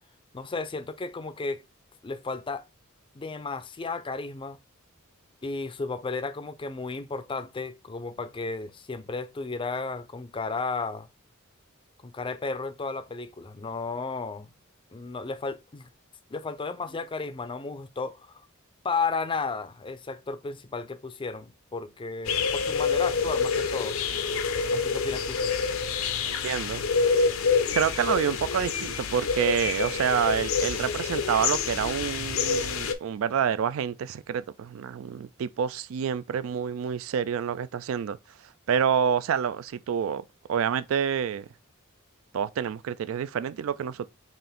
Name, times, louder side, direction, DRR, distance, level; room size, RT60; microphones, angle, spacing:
voice 1, 0.3-1.6 2.0-2.6 3.1-4.6 5.4-11.1 12.0-14.5 14.9-15.9 16.3-18.4 18.8-24.0 24.7-25.4, left 4 dB, 25° left, 0.4 m, -33 dB
sound 1, 22.2-32.9, left 5 dB, 75° left, 0.6 m, -27 dB
voice 2, 26.2-26.8 27.7-38.2 38.7-40.2 40.5-41.5 42.3-44.1, right 8 dB, 70° right, 0.3 m, -28 dB
5.6 x 2.5 x 3.5 m
head